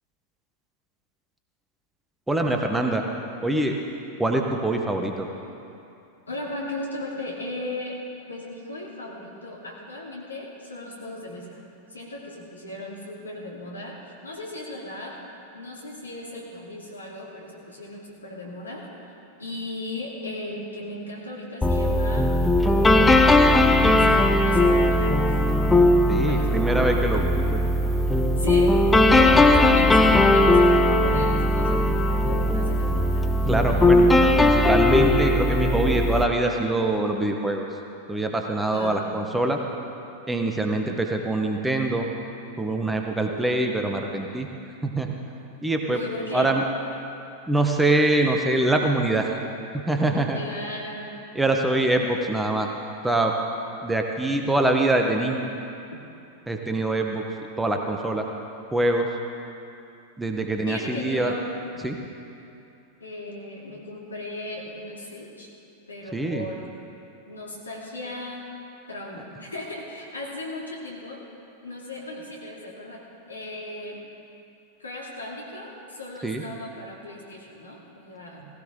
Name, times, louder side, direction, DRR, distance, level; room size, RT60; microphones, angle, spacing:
voice 1, 2.3-3.0 3.4-3.8 4.2-5.3 26.1-27.6 33.5-34.1 34.4-37.7 38.1-39.6 40.3-42.1 42.6-44.5 44.8-45.1 45.6-46.0 46.3-46.6 47.5-49.3 49.7-50.4 51.3-52.7 53.0-53.3 53.8-55.5 56.5-57.2 57.6-58.3 58.7-59.1 60.2-61.3 61.8-62.0 66.1-66.5 76.2-76.4, right 2 dB, 5° right, 3 dB, 1.2 m, -24 dB
voice 2, 6.3-8.0 8.3-11.6 11.9-15.2 15.5-18.9 19.4-22.3 22.7-23.3 23.7-25.2 26.2-26.9 28.4-28.8 29.1-33.6 38.7-39.0 45.9-46.6 50.3-51.3 60.7-61.5 63.0-65.5 65.9-66.6 67.3-68.5 68.9-71.2 71.6-74.0 74.8-78.5, left 2 dB, 75° left, -2 dB, 2.7 m, -36 dB
sound 1, 21.6-36.2, left 1 dB, 10° left, 0.8 m, -18 dB
17.5 x 16.5 x 3.8 m, 2.7 s
figure-of-eight pair, 90°, 0 cm